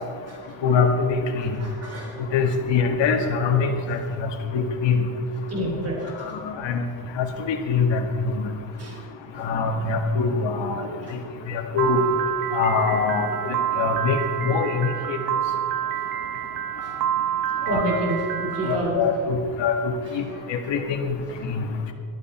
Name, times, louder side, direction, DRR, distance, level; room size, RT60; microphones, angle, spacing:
voice 1, 0.6-1.2 1.4-1.5 2.3-5.0 6.6-6.8 7.2-8.0 9.4-10.8 11.5-12.0 12.5-14.2 14.4-15.2 17.7-17.9 18.6-20.2 20.5-21.1 21.5-21.6, left 5 dB, 75° left, 4 dB, 2.0 m, -23 dB
voice 2, 1.4-2.2 5.5-6.4 8.8-9.0 9.3-9.5 11.0-11.2 15.3-15.5 15.7-15.8 16.8-17.0 17.7-19.1 20.0-20.4 21.5-21.6, right 1 dB, 35° right, 0 dB, 3.2 m, -29 dB
Piano, 11.8-18.7, right 10 dB, 50° right, 1.0 m, -28 dB
18.0 x 13.5 x 4.4 m, 2.4 s
cardioid pair, 175°, 44 cm